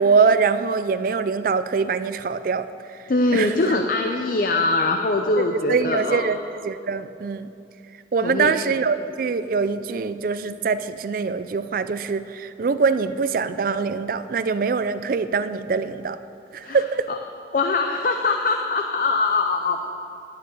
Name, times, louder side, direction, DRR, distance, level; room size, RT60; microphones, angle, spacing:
voice 1, 0.0-3.0 3.3-3.8 5.4-7.5 8.1-16.2 16.5-17.1, right 5 dB, 50° right, 12 dB, 0.4 m, -23 dB
voice 2, 3.1-6.3 8.2-8.5 16.6-16.8 17.1-17.2 17.5-19.9, left 3 dB, 50° left, 4 dB, 0.5 m, -22 dB
11.0 x 6.5 x 7.7 m, 2.7 s
head